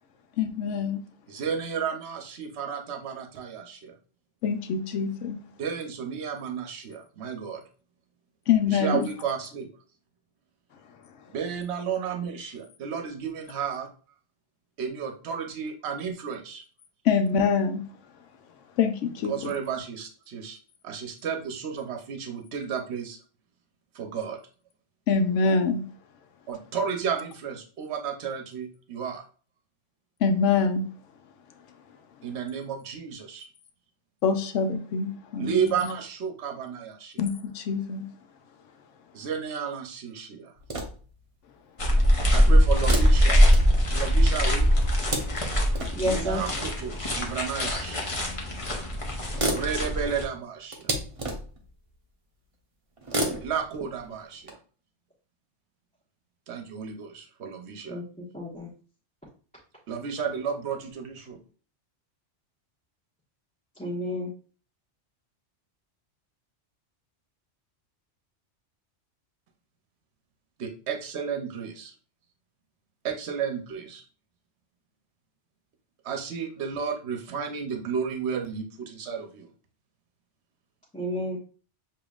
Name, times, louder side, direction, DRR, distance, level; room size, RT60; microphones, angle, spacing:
voice 1, 0.4-1.0 4.4-5.4 8.5-9.0 17.0-17.8 18.8-19.5 25.1-25.8 30.2-30.9 34.2-35.9 37.2-38.1, left 5 dB, 85° left, 1.0 m, -25 dB
voice 2, 1.3-3.9 5.6-7.6 8.7-9.7 11.3-13.9 14.8-16.6 19.3-20.6 20.8-23.2 23.9-24.4 26.5-29.2 32.2-33.5 35.4-37.2 39.1-40.5 42.3-43.4 43.9-44.7 46.0-48.0 49.4-50.9 53.4-54.6 56.5-58.0 59.9-61.4 70.6-71.9 73.0-74.0 76.0-79.5, right 7 dB, 65° right, 1.0 m, -32 dB
sound 1, 40.6-41.2 42.8-44.2 44.7-46.1 47.3-47.4 48.5-48.6 48.8-48.9 49.2-51.7 53.0-54.5, right 1 dB, 30° right, 0.8 m, -33 dB
sound 2, 41.8-50.2, equal, 30° left, 0.8 m, -22 dB
voice 3, 45.9-46.4 57.9-58.7 63.8-64.3 80.9-81.4, equal, 5° left, 1.1 m, -30 dB
7.0 x 2.9 x 2.4 m
omnidirectional pair, 1.2 m